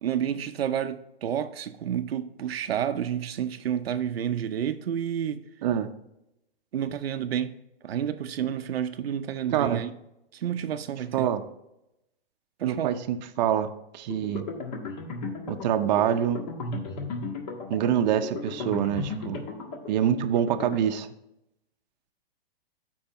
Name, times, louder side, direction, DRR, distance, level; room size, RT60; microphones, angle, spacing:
voice 1, 0.0-5.4 6.7-7.5 7.8-9.9 10.3-11.3 12.6-13.0, right 9 dB, 85° right, 0.7 m, -30 dB
voice 2, 12.6-14.5 15.5-16.4 17.7-19.4 19.9-21.1, right 9 dB, 50° right, 0.7 m, -26 dB
sound 1, 14.1-20.8, left 3 dB, 45° left, 1.6 m, -36 dB
12.5 x 4.7 x 3.0 m
hypercardioid pair, 145°, 29 cm